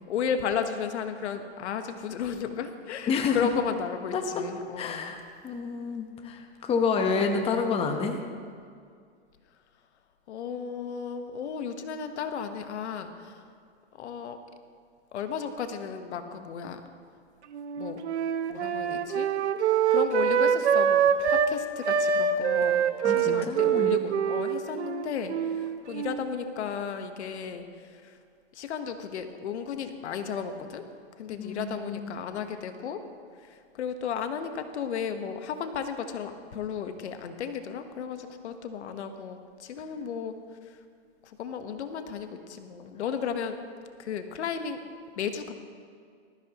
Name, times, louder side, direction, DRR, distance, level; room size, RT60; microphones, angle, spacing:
voice 1, 0.1-5.2 10.3-13.3 13.9-14.4 15.1-16.8 17.8-18.0 18.5-19.3 19.9-21.0 21.3-27.7 28.0-28.1 28.5-30.8 31.2-33.0 33.8-40.4 41.4-43.6 44.0-44.8 45.2-45.5, left 7 dB, 80° left, 7 dB, 1.3 m, -34 dB
voice 2, 3.1-3.4 4.1-4.2 4.8-8.2 23.0-24.0 31.4-32.1, left 5 dB, 15° left, 4 dB, 1.0 m, -29 dB
Wind instrument woodwind instrument, 17.5-21.5 21.8-26.3, right 8 dB, 85° right, 1.0 m, -25 dB
19.5 x 14.5 x 3.0 m, 2.2 s
hypercardioid pair, 145°, 33 cm